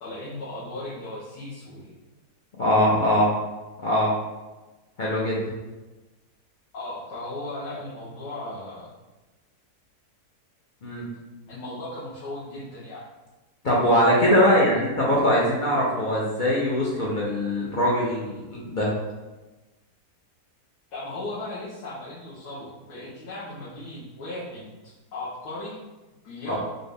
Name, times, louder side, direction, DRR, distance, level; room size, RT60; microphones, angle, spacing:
voice 1, 0.0-1.9 6.7-8.9 11.5-13.0 14.4-14.8 20.9-24.7 25.1-25.8 26.2-26.6, left 2 dB, 80° left, -9 dB, 1.5 m, -36 dB
voice 2, 2.6-3.3 3.8-4.1 5.0-5.4 10.8-11.0 13.6-18.9 26.5-26.6, equal, 60° left, -5 dB, 0.5 m, -22 dB
4.1 x 2.4 x 3.4 m, 1.1 s
omnidirectional pair, 1.7 m